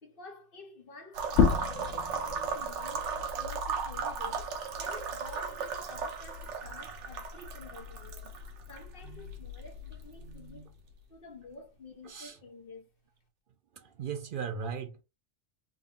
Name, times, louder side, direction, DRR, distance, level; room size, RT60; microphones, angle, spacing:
voice 1, 0.0-8.3 8.7-10.7 11.1-12.9, left 2 dB, 55° left, 1.1 m, -50 dB
sound 1, 1.1-10.9, right 4 dB, 75° right, 1.0 m, -37 dB
sound 2, 1.3-6.5 6.9-8.7, left 6 dB, 80° left, 0.9 m, -33 dB
voice 2, 12.0-12.4 13.7-15.0, right 6 dB, 55° right, 0.6 m, -37 dB
3.6 x 2.2 x 3.5 m
omnidirectional pair, 1.2 m